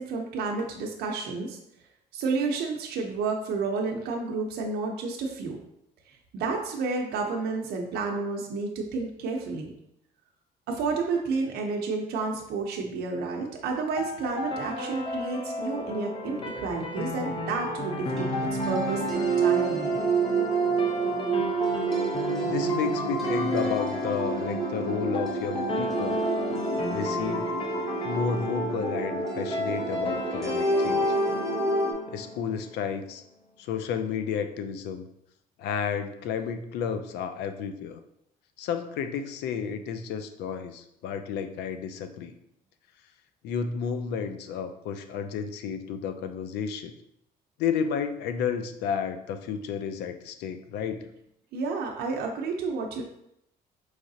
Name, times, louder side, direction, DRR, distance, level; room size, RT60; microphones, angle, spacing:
voice 1, 0.0-1.6 2.1-5.6 6.1-9.7 10.7-18.3 18.7-20.0 51.5-53.0, right 4 dB, 70° right, 1 dB, 0.6 m, -31 dB
sound 1, 14.0-32.9, left 1 dB, 30° left, 0.7 m, -33 dB
sound 2, 18.2-31.9, right 3 dB, ahead, 1.0 m, -28 dB
voice 2, 22.5-26.2 26.9-27.5 28.0-31.2 32.1-33.2 33.6-35.1 35.6-38.0 38.6-42.3 43.4-46.9 47.6-51.1, left 7 dB, 80° left, 9 dB, 0.4 m, -32 dB
4.7 x 3.2 x 2.7 m, 0.78 s
cardioid pair, 110°, 17 cm